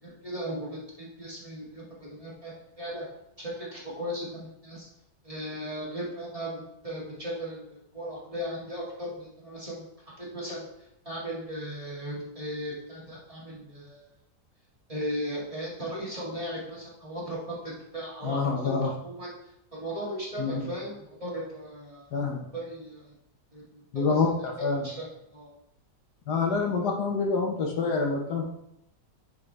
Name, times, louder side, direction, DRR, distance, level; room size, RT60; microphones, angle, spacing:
voice 1, 0.0-3.1 3.4-4.9 5.2-9.9 10.2-14.1 14.9-22.1 22.5-23.1 23.5-24.2 24.6-25.5, equal, 20° right, -6 dB, 2.1 m, -37 dB
voice 2, 18.2-18.9 20.4-20.6 22.1-22.5 23.9-24.3 24.6-24.9 26.3-28.5, left 4 dB, 70° left, 1 dB, 1.5 m, -26 dB
11.0 x 4.9 x 3.3 m, 0.80 s
omnidirectional pair, 1.9 m